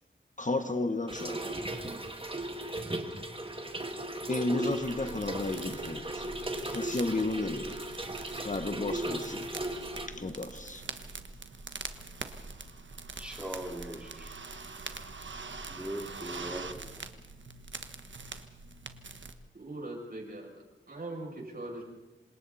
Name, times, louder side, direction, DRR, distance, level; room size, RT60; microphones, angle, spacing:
voice 1, 0.4-1.6 4.3-6.3 6.7-7.8 8.4-9.5 10.1-10.8, left 2 dB, 40° left, 8 dB, 1.3 m, -33 dB
Trickle dribble / Fill (with liquid), 1.1-10.1, right 1 dB, 25° right, 2.1 m, -37 dB
sound 1, 4.7-19.3, right 4 dB, 65° right, 1.3 m, -44 dB
voice 2, 13.2-14.3 15.7-17.0, right 1 dB, 5° right, 0 dB, 2.8 m, -40 dB
voice 3, 19.5-21.8, right 2 dB, 45° right, -1 dB, 7.2 m, -41 dB
27.0 x 26.5 x 4.2 m, 1.1 s
wide cardioid pair, 85°, 20 cm